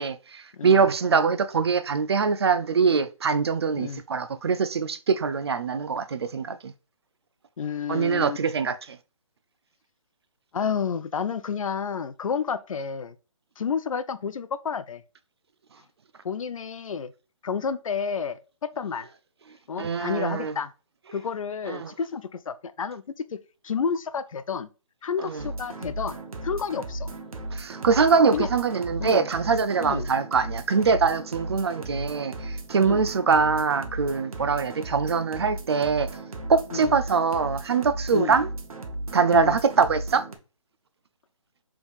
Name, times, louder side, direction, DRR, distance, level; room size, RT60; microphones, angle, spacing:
voice 1, 0.0-6.7 7.9-9.0 19.8-20.5 21.7-21.9 25.2-25.5 27.5-36.1 36.5-38.5 39.1-40.2, right 5 dB, 50° right, 0.4 m, -23 dB
voice 2, 0.5-0.9 3.8-4.0 7.6-8.4 10.5-13.1 13.6-15.0 16.2-17.1 17.4-18.4 18.8-19.1 19.7-20.7 21.1-23.0 23.3-23.4 23.6-24.7 25.0-26.2 26.4-27.1 28.3-28.5 29.0-29.3 29.8-30.1 32.8-33.1 36.7-36.9 38.1-38.4 39.3-39.6, left 6 dB, 70° left, 0.5 m, -30 dB
sound 1, 25.4-40.4, right 2 dB, 90° right, 1.0 m, -36 dB
4.8 x 3.5 x 2.5 m
hypercardioid pair, 170°, 18 cm